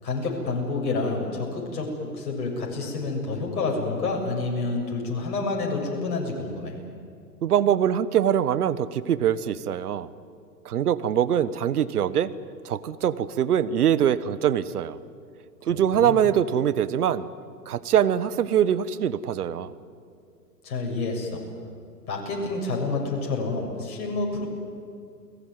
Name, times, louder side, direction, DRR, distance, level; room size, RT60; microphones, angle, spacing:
voice 1, 0.0-6.7 15.9-16.2 20.6-21.4 22.1-24.5, left 3 dB, 60° left, -1 dB, 7.4 m, -28 dB
voice 2, 7.4-10.1 10.6-12.3 12.6-15.0 15.7-17.3 17.7-19.7, right 9 dB, 65° right, 16 dB, 1.4 m, -23 dB
29.5 x 19.5 x 9.5 m, 2.4 s
hypercardioid pair, 125°, 49 cm